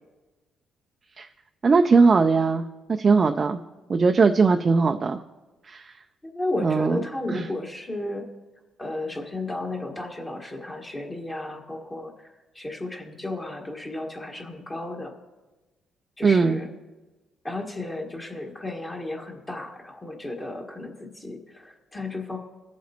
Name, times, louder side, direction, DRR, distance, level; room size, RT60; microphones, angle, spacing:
voice 1, 1.6-2.6 2.9-3.6 3.9-5.2 5.7-5.9 6.6-7.5 16.2-16.6, right 4 dB, 35° right, 6 dB, 0.4 m, -20 dB
voice 2, 6.2-8.3 8.8-12.3 12.5-15.1 16.2-16.7 17.4-22.4, left 2 dB, 20° left, 0 dB, 1.6 m, -33 dB
21.5 x 7.3 x 2.9 m, 1.2 s
cardioid pair, 90°, 0 cm